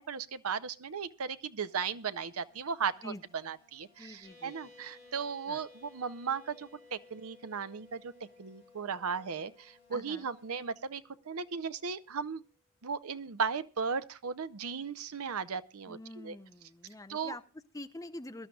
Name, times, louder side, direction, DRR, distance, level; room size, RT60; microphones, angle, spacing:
voice 1, 0.1-3.1 3.4-8.1 8.4-12.4 12.8-16.4 17.1-17.3, right 6 dB, 75° right, 14 dB, 0.7 m, -36 dB
sound 1, 1.6-10.6, left 6 dB, 10° right, 7.7 m, -69 dB
voice 2, 4.0-4.7 5.5-5.6 9.9-10.3 15.9-18.5, left 1 dB, 15° left, 9 dB, 0.6 m, -46 dB
sound 2, 4.2-12.3, left 3 dB, 50° right, 6.6 m, -59 dB
23.5 x 12.0 x 2.4 m, 0.32 s
head